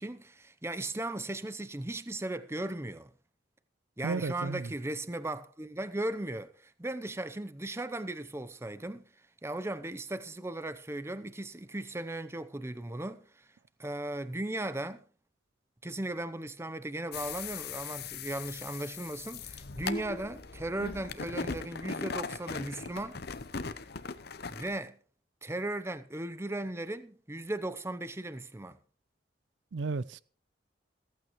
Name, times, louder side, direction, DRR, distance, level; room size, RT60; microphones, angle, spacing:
voice 1, 0.0-3.1 4.0-9.0 9.4-13.5 13.8-15.0 15.8-23.2 24.5-25.0 25.4-28.8, right 1 dB, 15° right, 0.6 m, -37 dB
voice 2, 4.0-4.7 29.7-30.2, right 4 dB, 70° right, 0.5 m, -33 dB
sound 1, 17.1-24.8, left 4 dB, 60° left, 0.8 m, -39 dB
15.0 x 15.0 x 3.1 m
head